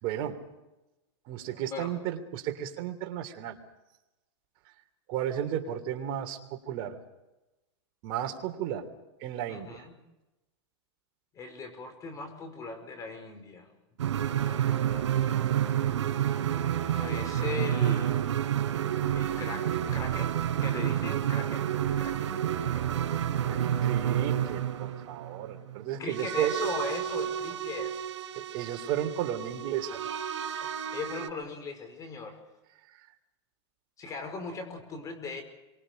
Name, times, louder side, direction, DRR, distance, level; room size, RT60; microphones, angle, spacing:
voice 1, 0.0-0.4 1.3-3.6 5.1-7.0 8.0-8.9 9.2-9.8 23.5-26.5 28.3-30.2 30.6-30.7, right 10 dB, 45° right, 5 dB, 3.2 m, -34 dB
voice 2, 9.5-10.0 11.3-13.7 14.0-15.5 16.9-18.2 19.1-20.3 20.6-21.7 22.0-22.3 22.7-23.7 26.0-28.0 30.9-32.4 34.0-35.4, left 4 dB, 25° left, 7 dB, 5.2 m, -39 dB
sound 1, 14.0-31.3, right 10 dB, 85° right, 4.6 m, -30 dB
27.5 x 24.5 x 5.2 m, 1.0 s
supercardioid pair, 145°, 15 cm